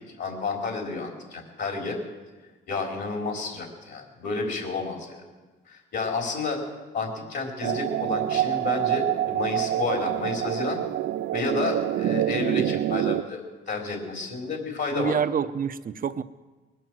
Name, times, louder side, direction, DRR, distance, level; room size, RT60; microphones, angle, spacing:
voice 1, 0.2-2.0 2.7-5.2 5.7-6.6 6.9-10.8 11.3-15.2, left 4 dB, 60° left, 2 dB, 4.3 m, -30 dB
sound 1, 7.6-13.2, right 13 dB, 70° right, 0.5 m, -26 dB
voice 2, 14.9-16.2, right 7 dB, 45° right, 12 dB, 0.7 m, -27 dB
21.0 x 9.0 x 7.8 m, 1.3 s
cardioid pair, 90°, 20 cm